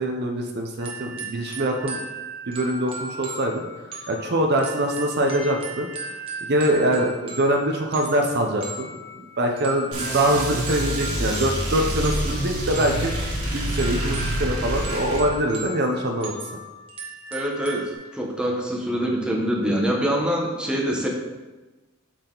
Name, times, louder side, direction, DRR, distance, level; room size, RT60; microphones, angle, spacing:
voice 1, 0.0-2.0 2.5-3.7 4.1-5.9 6.4-8.9 9.1-16.4, right 1 dB, 50° right, 3 dB, 0.7 m, -24 dB
sound 1, 0.8-17.9, right 2 dB, 25° right, 1.2 m, -37 dB
sound 2, 9.9-15.2, right 1 dB, 90° right, 1.9 m, -27 dB
voice 2, 17.3-21.1, equal, 5° right, -2 dB, 1.0 m, -25 dB
6.8 x 5.9 x 3.8 m, 1.2 s
head